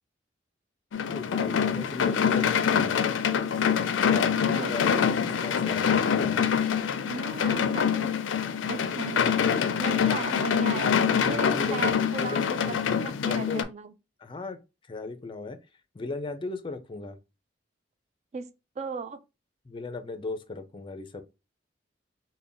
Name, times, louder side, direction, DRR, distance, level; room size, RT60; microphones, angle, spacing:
sound 1, 0.9-13.6, left 7 dB, 85° left, 0.4 m, -25 dB
voice 1, 1.0-3.2 4.0-6.5 8.9-9.3 11.0-13.0 13.2-13.7 14.2-14.6 14.9-15.6 15.9-17.2 19.7-21.2, left 3 dB, 25° left, 0.4 m, -37 dB
voice 2, 4.2-5.2 7.1-8.1 8.7-9.3 9.8-10.9 11.2-12.8 13.0-13.9 18.3-19.2, right 5 dB, 35° right, 0.4 m, -37 dB
3.4 x 2.2 x 3.8 m
head